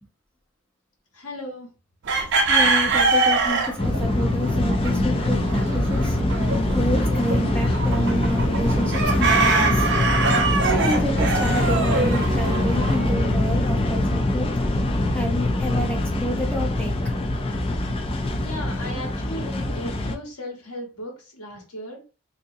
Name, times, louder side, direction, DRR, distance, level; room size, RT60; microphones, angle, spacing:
voice 1, 1.1-1.7 18.4-22.0, left 1 dB, 90° left, 0 dB, 1.4 m, -36 dB
chicken flock, 2.1-13.3, right 3 dB, 50° right, 0.5 m, -24 dB
voice 2, 2.5-6.2 6.7-9.9 10.6-14.5 15.1-16.9, equal, 5° left, -1 dB, 0.8 m, -29 dB
sound 1, 3.8-20.2, left 1 dB, 25° left, 0.4 m, -23 dB
3.7 x 2.7 x 2.7 m, 0.33 s
head